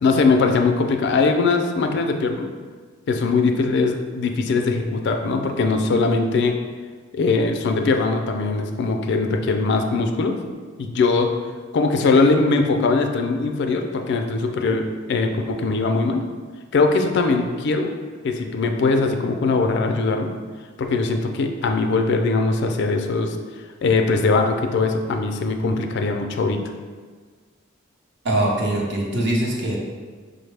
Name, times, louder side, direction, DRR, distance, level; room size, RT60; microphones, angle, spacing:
voice 1, 0.0-2.5 3.1-6.5 7.1-10.4 10.8-11.3 11.7-16.2 16.7-17.9 18.2-20.4 20.8-23.4 23.8-26.6, left 3 dB, 55° left, 5 dB, 0.3 m, -21 dB
voice 2, 28.2-29.8, right 1 dB, 60° right, -2 dB, 0.8 m, -22 dB
5.3 x 2.1 x 3.3 m, 1.5 s
head